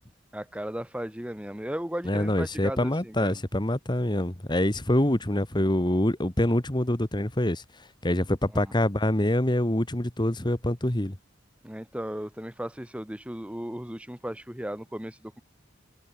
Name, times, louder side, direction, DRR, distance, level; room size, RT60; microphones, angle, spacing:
voice 1, 0.3-3.4 8.5-8.7 11.6-15.4, equal, 5° right, 1.2 m, -36 dB
voice 2, 2.1-7.6 8.0-11.2, left 1 dB, 25° left, 1.7 m, -25 dB
head